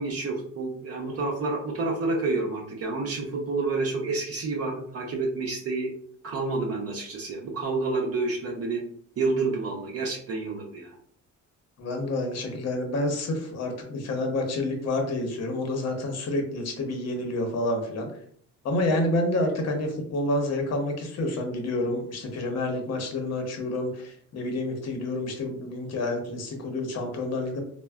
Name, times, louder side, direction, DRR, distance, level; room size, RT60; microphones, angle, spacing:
voice 1, 0.0-5.9 6.2-8.8 9.2-10.9, right 3 dB, 50° right, 0 dB, 0.7 m, -29 dB
voice 2, 11.8-18.1 18.6-27.6, left 1 dB, 60° left, 3 dB, 0.8 m, -28 dB
3.2 x 2.1 x 2.2 m, 0.62 s
cardioid pair, 90°, 30 cm